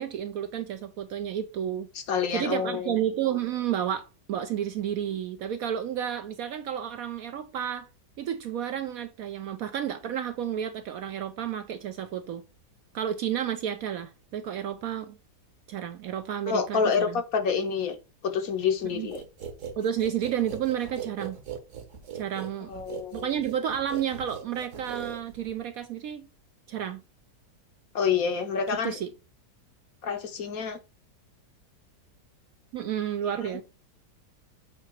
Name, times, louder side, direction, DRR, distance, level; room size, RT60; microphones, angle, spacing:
voice 1, 0.0-1.9 2.3-7.9 8.2-12.4 12.9-15.2 15.7-17.2 18.9-19.1 19.8-21.4 22.1-22.7 23.1-26.3 26.7-27.0 28.8-29.1 32.7-33.6, right 9 dB, 70° right, 0.9 m, -31 dB
voice 2, 1.9-2.9 16.5-18.0 18.2-19.2 22.7-23.2 27.9-29.0 30.0-30.8 33.2-33.5, left 6 dB, 60° left, 1.2 m, -28 dB
sound 1, 19.1-25.6, right 8 dB, 50° right, 1.3 m, -40 dB
8.0 x 2.9 x 4.4 m
omnidirectional pair, 1.8 m